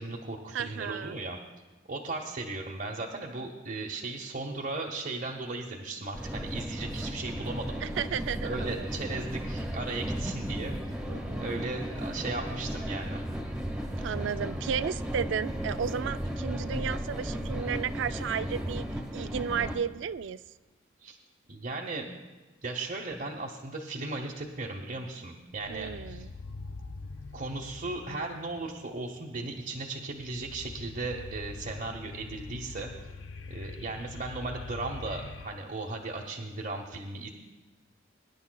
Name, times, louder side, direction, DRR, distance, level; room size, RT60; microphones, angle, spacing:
voice 1, 0.0-1.4 1.9-7.8 8.4-10.7 11.4-13.2 21.0-21.2 21.5-22.1 22.6-26.3 27.3-32.9 33.5-37.3, right 3 dB, 45° right, -2 dB, 0.8 m, -36 dB
voice 2, 0.5-1.2 7.8-8.9 11.1-11.6 14.0-20.4 25.7-26.3, right 7 dB, 75° right, 14 dB, 0.3 m, -34 dB
sound 1, 6.1-19.8, equal, 5° right, 1.1 m, -35 dB
sound 2, 24.5-25.1 25.5-35.5, left 3 dB, 75° left, 0.6 m, -44 dB
22.5 x 10.5 x 2.3 m, 1.2 s
head